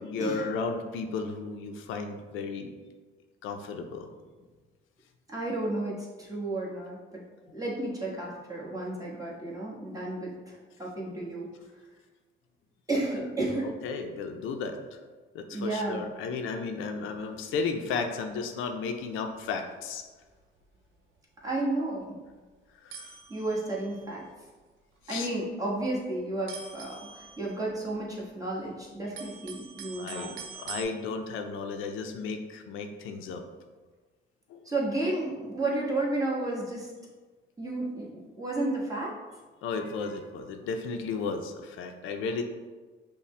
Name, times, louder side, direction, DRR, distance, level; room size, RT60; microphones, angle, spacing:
voice 1, 0.0-2.7 3.4-4.1 13.1-13.2 13.8-15.0 15.3-20.0 22.8-23.1 25.1-25.3 30.0-33.4 34.5-34.7 39.6-42.4, left 4 dB, 85° left, 5 dB, 0.5 m, -34 dB
voice 2, 5.3-7.2 7.5-11.5 12.9-13.7 15.5-16.0 21.4-22.1 23.3-24.3 25.1-30.6 34.6-36.9 37.6-39.1, right 2 dB, 15° right, -5 dB, 1.2 m, -32 dB
sound 1, 17.1-18.1 18.4-18.6 19.1-19.3 19.7-19.8 20.2-20.3 20.6-20.8 21.6-21.7 22.3-22.4 22.9-24.3 25.0-25.5 25.8-26.0 26.5-28.5 28.8-30.8, right 6 dB, 80° right, 0.7 m, -45 dB
5.6 x 2.2 x 3.2 m, 1.3 s
cardioid pair, 90°, 20 cm